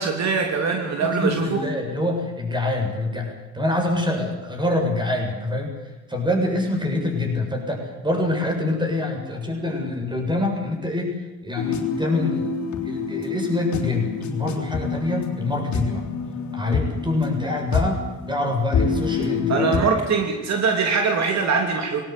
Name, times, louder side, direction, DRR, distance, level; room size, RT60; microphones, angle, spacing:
voice 1, 0.0-1.6 19.5-22.0, right 5 dB, 60° right, 3 dB, 3.1 m, -22 dB
voice 2, 1.0-5.7 6.1-12.5 12.8-16.0 16.5-20.2, left 2 dB, 15° right, 2 dB, 7.5 m, -25 dB
sound 1, 11.6-19.8, left 5 dB, 70° left, 3.7 m, -27 dB
20.5 x 17.5 x 8.5 m, 1.2 s
cardioid pair, 90°, 30 cm